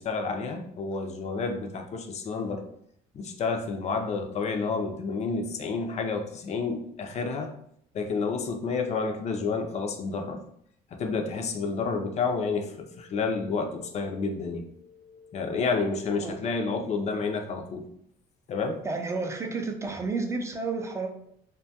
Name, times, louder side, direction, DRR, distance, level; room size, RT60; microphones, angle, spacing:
voice 1, 0.0-2.6 3.1-7.5 7.9-10.4 10.9-17.8 18.5-18.8, left 4 dB, 40° left, 4 dB, 0.4 m, -30 dB
voice 2, 18.8-21.1, right 3 dB, 15° right, 3 dB, 0.4 m, -31 dB
2.6 x 2.2 x 2.7 m, 0.70 s
cardioid pair, 110°, 17 cm